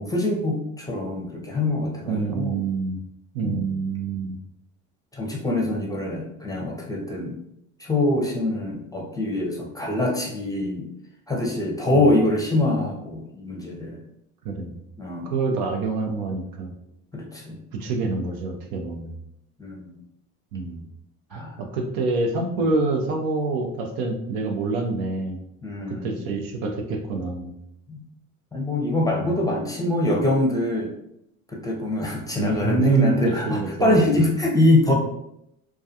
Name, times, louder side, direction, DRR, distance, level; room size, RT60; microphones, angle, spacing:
voice 1, 0.0-2.6 3.4-3.7 5.1-7.4 7.8-10.9 11.3-14.0 15.0-15.3 17.1-17.6 19.6-20.0 21.3-21.6 22.6-22.7 25.6-26.1 27.9-28.0 28.5-30.9 31.5-34.9, left 1 dB, 10° left, -1 dB, 0.6 m, -24 dB
voice 2, 2.1-3.0 3.3-4.4 11.9-12.1 14.4-14.8 15.2-16.7 17.7-19.2 20.5-20.8 21.3-25.4 25.9-27.5 29.2-29.3 32.4-34.2 34.9-35.0, right 3 dB, 65° right, 3 dB, 0.6 m, -26 dB
2.3 x 2.3 x 2.7 m, 0.80 s
hypercardioid pair, 70°, 38 cm